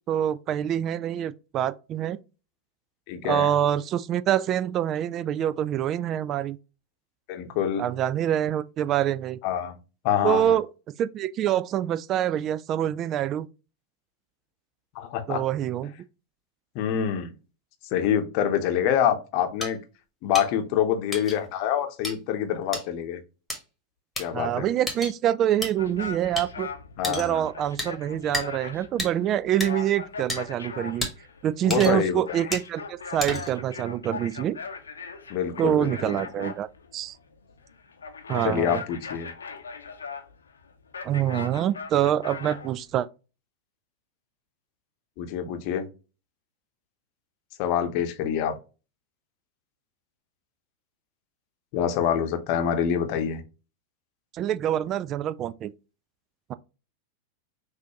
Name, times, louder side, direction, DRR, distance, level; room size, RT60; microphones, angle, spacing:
voice 1, 0.1-2.2 3.2-6.6 7.8-9.4 10.2-10.7 11.0-13.5 15.3-15.9 24.3-26.7 27.1-31.1 31.4-34.6 35.6-36.7 36.9-37.2 38.3-38.8 41.0-43.1 54.3-55.7 56.5-56.6, right 11 dB, 30° right, 0.3 m, -26 dB
voice 2, 3.1-3.5 7.3-7.8 9.4-9.8 10.0-10.6 14.9-15.4 16.7-17.3 17.9-19.8 20.2-23.2 24.2-24.7 27.0-27.5 31.6-32.4 35.3-36.2 38.4-39.3 45.2-45.9 47.6-48.6 51.7-53.4, left 9 dB, 45° left, 0.9 m, -26 dB
sound 1, 19.6-19.7 20.3-20.5 21.1-21.4 22.0-22.1 22.7-22.8 23.5-23.6 24.2-24.3 24.9-25.1 25.6-25.7 26.4-26.5 27.0-27.3 27.8-27.9 28.3-28.5 29.0-29.1 29.6-29.7 30.3-30.4 31.0-31.1 31.7-32.1 32.5-32.7 33.2-33.6, left 1 dB, 5° left, 1.5 m, -30 dB
sound 2, 25.7-43.0, left 5 dB, 70° left, 0.7 m, -40 dB
6.1 x 2.7 x 2.9 m
figure-of-eight pair, 90°, 0 cm